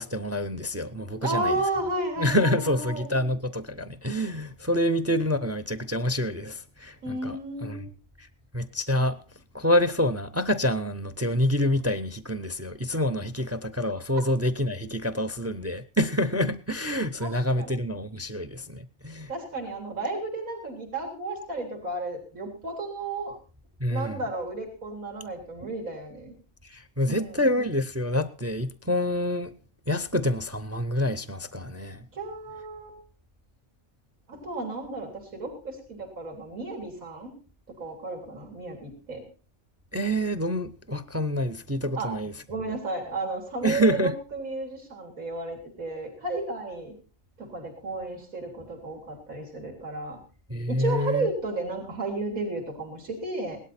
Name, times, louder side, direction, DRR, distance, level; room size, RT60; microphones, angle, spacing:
voice 1, 0.0-1.6 2.2-7.8 8.2-8.3 8.5-9.2 9.5-19.3 23.8-24.2 26.7-29.5 29.9-32.0 39.9-42.3 43.6-44.1 50.5-51.3, left 1 dB, 20° right, 0.4 m, -27 dB
voice 2, 1.2-3.1 7.0-7.9 14.1-14.2 17.2-17.7 19.3-23.4 23.9-26.3 27.1-27.5 32.1-33.0 34.3-37.3 37.8-39.2 42.0-42.2 42.5-47.0 47.4-50.2 50.7-53.6, right 2 dB, 75° right, 3.9 m, -33 dB
18.0 x 12.0 x 4.2 m
omnidirectional pair, 1.5 m